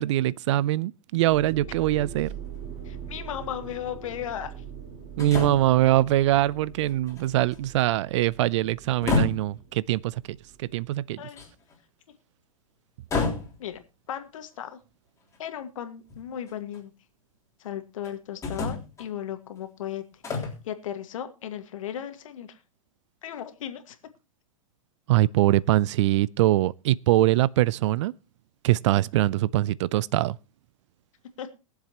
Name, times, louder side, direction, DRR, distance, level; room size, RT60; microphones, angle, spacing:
voice 1, 0.0-2.3 5.2-10.2 10.6-11.2 25.1-28.1 28.6-30.4, right 15 dB, 60° right, 0.5 m, -23 dB
sound 1, 1.2-11.0, right 7 dB, 35° right, 6.1 m, -43 dB
sound 2, 2.3-2.4 5.2-5.7 6.3-6.4 6.9-7.8 8.8-9.6 11.4-11.8 13.1-13.8 15.3-15.4 16.1-16.8 18.0-18.1 18.4-19.1 20.2-20.6, left 3 dB, 15° left, 3.5 m, -29 dB
voice 2, 2.8-4.5 11.2-11.4 13.6-13.8 14.1-14.8 15.4-16.9 17.6-20.0 20.6-22.6 23.2-24.0 31.4-31.5, left 10 dB, 70° left, 1.8 m, -36 dB
22.0 x 7.4 x 2.9 m
hypercardioid pair, 125°, 17 cm